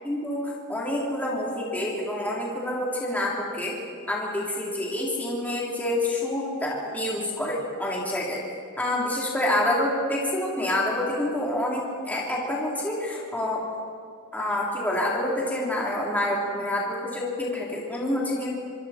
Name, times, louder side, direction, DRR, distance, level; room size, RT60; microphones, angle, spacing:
voice 1, 0.0-3.8 4.1-8.4 8.8-13.6 14.3-18.5, left 1 dB, 10° left, -5 dB, 3.5 m, -27 dB
25.5 x 25.5 x 4.4 m, 2.2 s
head